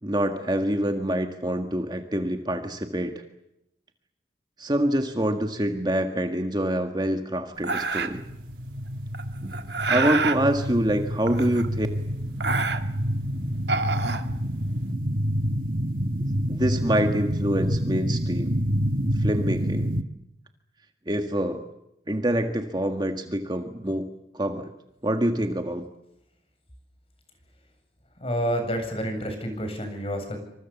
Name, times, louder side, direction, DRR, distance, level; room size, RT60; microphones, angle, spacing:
voice 1, 0.0-3.2 4.6-8.2 9.4-9.6 9.9-11.9 16.5-18.5 19.1-19.9 21.1-21.7 22.1-24.1 24.3-24.7 25.0-25.8, right 1 dB, 25° right, 6 dB, 1.7 m, -26 dB
sound 1, 7.6-8.3 9.1-10.4 11.3-11.9 12.2-13.1 13.6-14.8, right 4 dB, 80° right, 1.8 m, -27 dB
sound 2, 8.1-20.0, equal, 50° right, 1.6 m, -28 dB
voice 2, 28.2-30.4, equal, 35° left, 5 dB, 7.7 m, -29 dB
27.0 x 26.0 x 7.2 m, 0.85 s
head